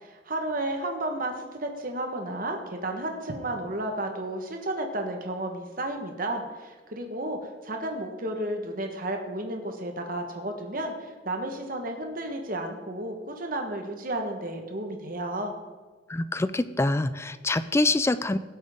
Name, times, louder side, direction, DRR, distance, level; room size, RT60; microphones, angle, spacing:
voice 1, 0.0-15.5, right 1 dB, 50° right, 4 dB, 1.4 m, -32 dB
voice 2, 16.1-18.4, left 2 dB, 15° left, 13 dB, 0.4 m, -25 dB
17.5 x 7.7 x 3.7 m, 1.4 s
head